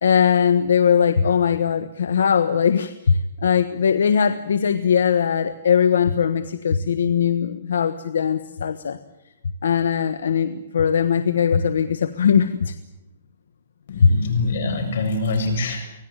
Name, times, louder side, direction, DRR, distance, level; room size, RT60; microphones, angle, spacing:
voice 1, 0.0-9.0 9.6-12.7 14.0-14.1, left 7 dB, 85° left, 12 dB, 1.2 m, -20 dB
voice 2, 13.9-15.8, left 3 dB, 60° left, 5 dB, 7.4 m, -24 dB
25.0 x 18.0 x 8.9 m, 0.90 s
hypercardioid pair, 160°, 0 cm